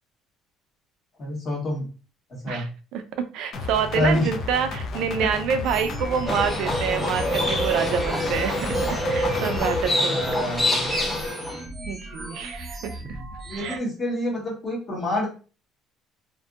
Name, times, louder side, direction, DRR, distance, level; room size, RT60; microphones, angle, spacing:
voice 1, 1.2-1.9 2.4-2.6 3.9-4.3 6.3-6.4 10.0-10.9 13.4-15.3, left 1 dB, 35° left, -3 dB, 1.2 m, -27 dB
voice 2, 2.9-10.2 11.9-13.0 13.5-13.8, right 7 dB, 70° right, 9 dB, 0.4 m, -27 dB
sound 1, 3.5-9.9, left 3 dB, 50° left, 0.5 m, -33 dB
sound 2, 5.6-13.8, right 1 dB, 20° right, 0.5 m, -37 dB
Livestock farm animals working animals, 6.2-11.6, equal, 5° left, 0.9 m, -26 dB
2.6 x 2.6 x 2.4 m, 0.36 s
cardioid pair, 140°, 0 cm